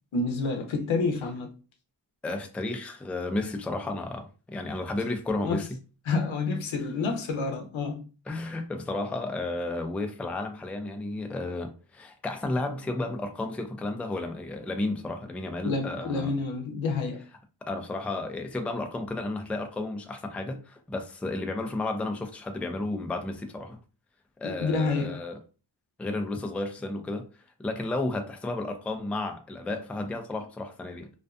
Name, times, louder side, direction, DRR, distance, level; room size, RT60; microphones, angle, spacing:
voice 1, 0.1-1.5 5.4-5.6 6.1-8.1 15.6-17.2 24.4-25.2, left 3 dB, 85° left, 0.7 m, -29 dB
voice 2, 2.2-5.7 8.3-16.3 17.6-23.8 24.4-25.4 26.0-27.3 27.6-31.1, left 2 dB, 5° left, 0.3 m, -32 dB
2.5 x 2.3 x 2.2 m
cardioid pair, 50°, 46 cm